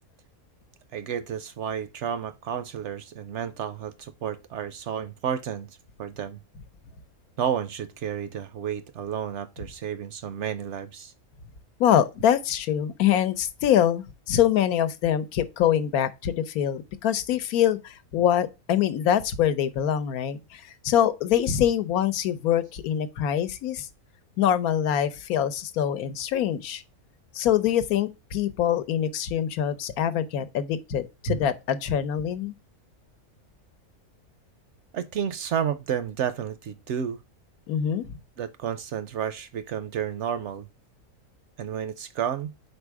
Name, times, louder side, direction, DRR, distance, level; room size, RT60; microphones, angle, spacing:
voice 1, 0.9-6.4 7.4-11.1 31.3-31.4 34.9-37.2 38.4-40.7 41.6-42.5, right 8 dB, 65° right, 0.7 m, -31 dB
voice 2, 11.8-23.9 24.4-26.8 27.3-32.5 37.7-38.1, left 10 dB, 80° left, 1.2 m, -24 dB
4.8 x 4.4 x 4.6 m
omnidirectional pair, 1.5 m